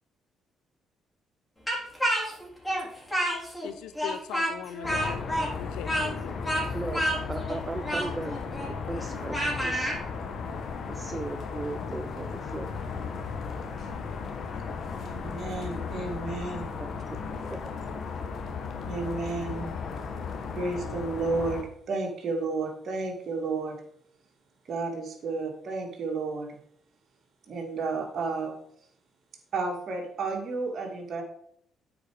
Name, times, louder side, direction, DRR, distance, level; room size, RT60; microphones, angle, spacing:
Speech, 1.7-3.7 4.0-10.0, equal, 5° left, 3.6 m, -29 dB
voice 1, 3.6-5.2 5.6-6.4, left 10 dB, 80° left, 0.6 m, -40 dB
sound 1, 4.8-21.6, left 5 dB, 60° left, 1.2 m, -35 dB
voice 2, 7.3-9.9 10.9-12.7 17.5-17.7 19.6-19.7, right 2 dB, 25° right, 0.6 m, -37 dB
voice 3, 15.0-16.7 18.8-19.7 20.5-23.8 24.7-26.6 27.5-28.5 29.5-31.2, right 3 dB, 55° right, 2.2 m, -32 dB
8.8 x 4.8 x 5.0 m
supercardioid pair, 60°, 0 cm